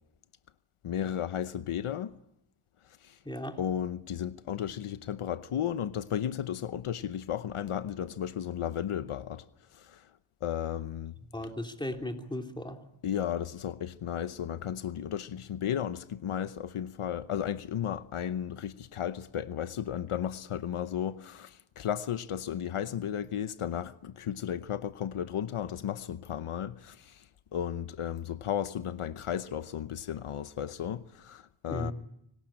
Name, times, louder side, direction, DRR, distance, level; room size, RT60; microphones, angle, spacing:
voice 1, 0.8-2.1 2.9-3.2 3.6-9.4 9.7-10.1 10.4-11.1 13.0-31.9, left 9 dB, 85° left, 0.9 m, -34 dB
voice 2, 3.2-3.6 11.3-12.8 31.7-31.9, left 1 dB, 10° left, 3.2 m, -36 dB
25.0 x 18.5 x 8.8 m
cardioid pair, 65°, 49 cm